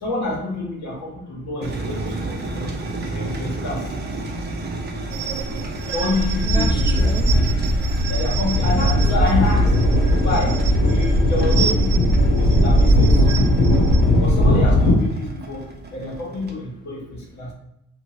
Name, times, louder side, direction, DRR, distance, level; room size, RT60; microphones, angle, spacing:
voice 1, 0.0-2.0 2.3-2.7 3.1-3.9 5.9-6.9 8.1-9.8 10.2-12.0 12.4-13.5 14.2-15.6 15.9-17.5, left 2 dB, 70° left, -3 dB, 1.3 m, -27 dB
sound 1, 1.6-16.5, right 2 dB, 35° right, 0.6 m, -33 dB
sound 2, 5.1-14.0, right 5 dB, 80° right, 0.5 m, -31 dB
sound 3, 6.2-14.9, equal, 90° left, 0.8 m, -17 dB
voice 2, 6.4-8.6, left 2 dB, 15° left, 1 dB, 0.6 m, -35 dB
2.6 x 2.6 x 3.0 m, 0.82 s
cardioid pair, 90°, 30 cm